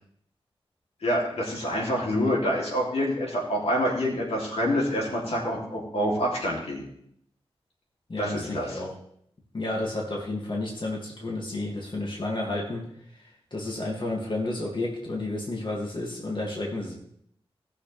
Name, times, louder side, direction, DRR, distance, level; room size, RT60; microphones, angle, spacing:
voice 1, 1.0-6.9 8.2-8.8, equal, 85° left, -3 dB, 3.2 m, -27 dB
voice 2, 8.1-8.9 9.5-12.8 13.2-16.9, left 2 dB, 50° left, -2 dB, 2.5 m, -31 dB
18.5 x 6.5 x 3.5 m, 0.68 s
wide cardioid pair, 75°, 10 cm